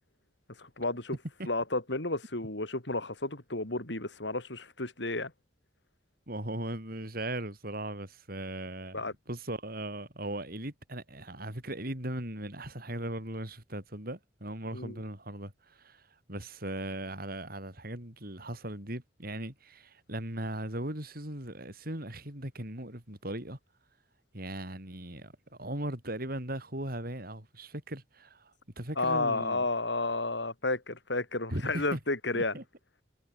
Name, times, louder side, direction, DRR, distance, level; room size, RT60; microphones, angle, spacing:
voice 1, 0.6-1.2 1.5-5.3 8.9-9.1 14.7-14.9 29.0-32.6, left 2 dB, 85° left, 5.2 m, -32 dB
voice 2, 6.3-23.6 24.3-25.3 25.6-28.5 28.8-29.7 31.5-32.0 32.3-32.6, right 1 dB, 55° right, 7.7 m, -38 dB
head